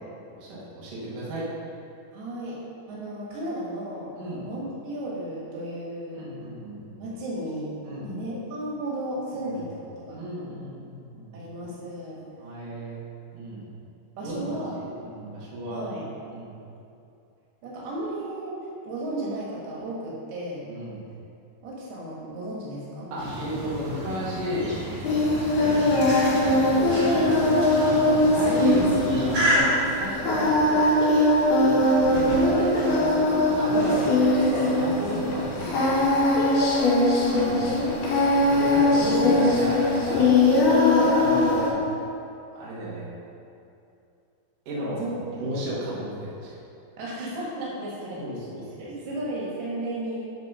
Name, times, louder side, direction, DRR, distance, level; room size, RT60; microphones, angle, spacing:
voice 1, 0.3-1.5 4.2-4.4 6.1-7.0 7.8-8.1 9.3-9.6 9.8-11.3 12.4-13.0 13.3-13.6 14.2-15.8 16.3-16.5 20.6-21.0 23.1-24.7 25.3-27.4 27.8-30.9 31.6-36.6 37.3-37.7 38.3-40.3 41.1-41.8 42.5-43.1 44.7-45.0 45.3-46.5 48.2-48.9, right 1 dB, 60° right, -7 dB, 3.2 m, -33 dB
voice 2, 2.1-2.6 2.9-4.2 4.4-6.2 7.0-7.7 8.0-10.2 11.3-12.2 14.2-14.8 15.7-16.0 17.6-20.7 21.6-23.6 25.6-25.8 28.7-29.0 31.8-32.6 37.3-38.2 38.9-39.2 40.9-41.2 45.0-45.2 45.5-45.6 47.0-48.2 48.8-50.2, right 1 dB, 90° right, -5 dB, 3.6 m, -34 dB
sound 1, 23.2-29.6, equal, 35° right, 1.7 m, -31 dB
Singing, 25.0-41.7, left 2 dB, 90° left, 3.7 m, -21 dB
sound 2, 28.2-29.1 30.2-30.7 32.0-34.5 34.8-34.9 35.1-35.2 35.7-36.1 37.2-37.6 38.1-38.2 38.4-38.9, left 1 dB, 40° left, 1.6 m, -39 dB
11.5 x 4.3 x 5.5 m, 2.6 s
omnidirectional pair, 4.4 m